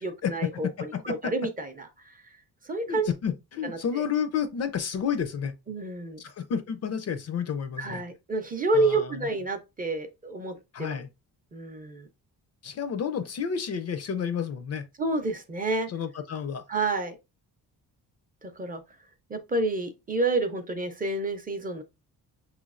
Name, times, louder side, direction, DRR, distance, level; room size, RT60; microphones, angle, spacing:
voice 1, 0.0-2.1 2.6-3.1 3.6-4.0 5.7-6.2 7.8-11.0 11.5-12.1 15.0-15.9 16.7-17.2 18.4-18.8 19.3-21.8, right 2 dB, 25° right, 0.5 m, -29 dB
voice 2, 0.6-1.3 2.9-5.5 6.2-8.0 8.7-9.3 10.7-11.1 12.6-14.9 15.9-16.7, left 7 dB, 45° left, 0.4 m, -31 dB
5.8 x 3.1 x 2.4 m
cardioid pair, 170°, 38 cm